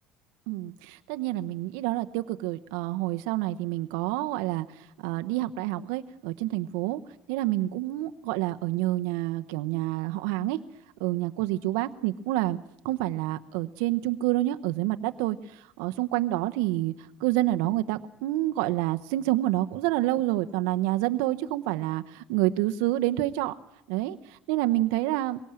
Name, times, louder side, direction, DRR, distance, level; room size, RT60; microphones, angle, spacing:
voice 1, 0.5-4.7 5.0-7.0 7.3-10.6 11.0-12.6 12.8-15.4 15.8-16.9 17.2-23.5 23.9-24.2 24.5-25.4, right 16 dB, 90° right, 8 dB, 0.8 m, -28 dB
21.5 x 18.0 x 8.9 m, 0.78 s
cardioid pair, 120°, 4 cm